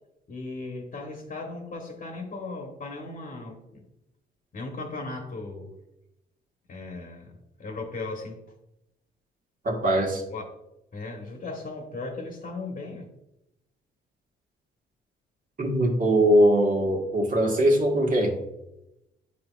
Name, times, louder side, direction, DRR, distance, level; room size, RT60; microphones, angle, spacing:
voice 1, 0.3-3.8 4.5-5.7 6.7-8.4 10.3-10.4 10.9-13.1, left 3 dB, 45° left, 1 dB, 1.3 m, -37 dB
voice 2, 9.6-10.2 15.6-18.4, right 1 dB, 40° right, 0 dB, 1.6 m, -21 dB
9.2 x 4.6 x 2.4 m, 0.90 s
cardioid pair, 90°, 20 cm